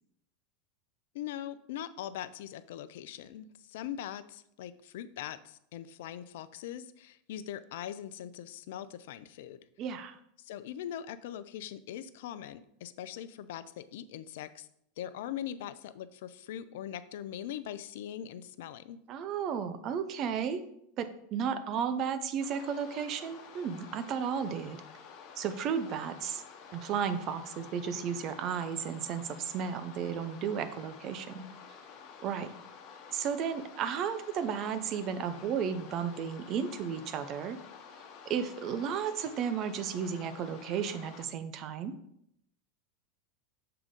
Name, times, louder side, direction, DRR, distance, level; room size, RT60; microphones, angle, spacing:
voice 1, 1.1-9.6 10.4-14.7 15.0-19.0, left 10 dB, 70° left, 14 dB, 0.4 m, -41 dB
voice 2, 9.8-10.2 19.1-20.6 21.0-24.8 25.4-26.4 26.7-31.4 32.2-32.5 33.1-37.6 38.2-42.0, right 7 dB, 45° right, 11 dB, 0.7 m, -33 dB
sound 1, 22.4-41.2, left 6 dB, 55° left, 1.1 m, -50 dB
6.9 x 3.6 x 5.1 m, 0.74 s
hypercardioid pair, 95°, 0 cm